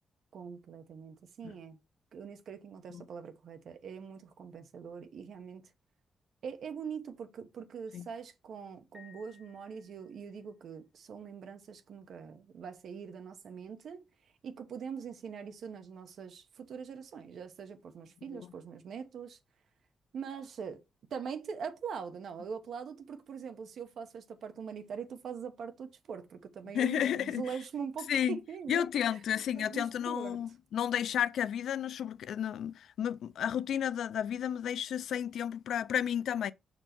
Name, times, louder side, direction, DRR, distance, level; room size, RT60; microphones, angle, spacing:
voice 1, 0.3-1.8 2.1-5.7 6.4-14.0 14.4-19.4 20.1-20.8 21.1-29.2 29.6-30.4, right 6 dB, 65° right, 1.1 m, -43 dB
Piano, 8.9-10.4, left 7 dB, 20° left, 4.0 m, -59 dB
voice 2, 26.7-27.4 28.1-28.4 28.7-36.5, left 9 dB, 80° left, 0.4 m, -32 dB
6.5 x 4.5 x 4.4 m
wide cardioid pair, 170°, 0 cm